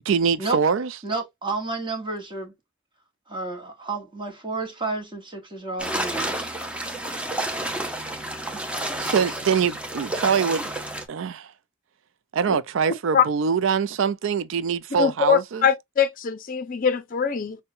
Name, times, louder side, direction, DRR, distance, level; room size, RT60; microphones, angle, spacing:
voice 1, 0.1-0.9 7.4-7.8 9.0-10.7 11.1-11.5 12.3-15.7, right 6 dB, 70° right, 0.4 m, -24 dB
voice 2, 1.0-2.5 3.3-6.5, right 3 dB, 25° right, 1.1 m, -31 dB
sound 1, 5.8-11.0, right 1 dB, 5° right, 0.6 m, -30 dB
voice 3, 15.0-17.6, left 7 dB, 45° left, 0.5 m, -22 dB
5.4 x 2.2 x 2.6 m
head